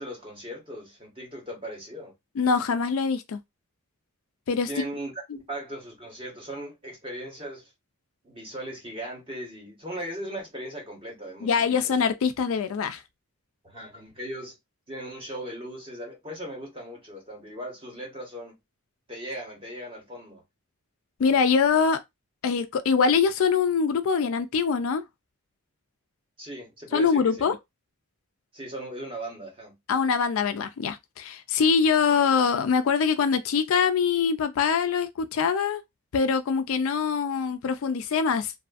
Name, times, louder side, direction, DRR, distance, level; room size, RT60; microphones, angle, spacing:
voice 1, 0.0-2.1 4.7-7.6 8.2-11.5 11.8-11.9 13.6-14.5 14.9-18.5 19.1-20.4 26.4-27.5 28.5-29.7, right 1 dB, 25° right, 1.2 m, -38 dB
voice 2, 2.4-3.4 4.5-4.7 11.4-13.0 21.2-22.0 22.4-25.0 26.9-27.6 29.9-35.8 36.1-38.5, left 6 dB, 70° left, 0.3 m, -23 dB
2.6 x 2.5 x 2.4 m
head